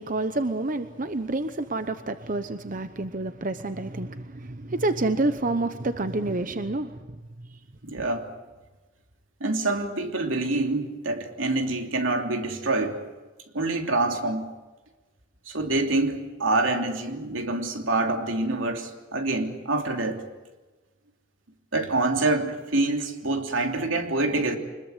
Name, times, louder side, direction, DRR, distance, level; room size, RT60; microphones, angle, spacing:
voice 1, 0.0-7.6 8.0-8.1, right 2 dB, 45° right, 10 dB, 0.9 m, -29 dB
voice 2, 7.8-8.3 9.4-13.0 13.5-14.4 15.5-20.2 21.7-24.6, right 2 dB, 85° right, 4 dB, 3.0 m, -26 dB
25.0 x 21.0 x 8.0 m, 1.2 s
head